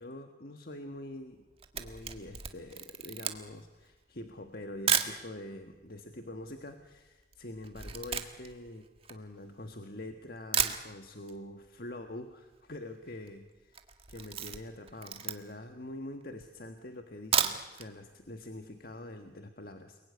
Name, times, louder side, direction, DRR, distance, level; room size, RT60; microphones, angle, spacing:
voice 1, 0.0-1.4 1.7-13.8 14.1-20.0, left 1 dB, 55° left, 6 dB, 1.6 m, -45 dB
Camera, 1.3-5.2 5.9-6.0 6.2-9.8 10.2-10.3 10.5-11.4 11.7-11.8 12.1-12.2 12.3-12.8 13.1-13.3 13.7-15.7 16.2-16.3 17.1-17.9 18.3-18.4 18.7-18.8, right 8 dB, 35° right, 1.6 m, -33 dB
29.5 x 21.0 x 9.6 m, 1.1 s
head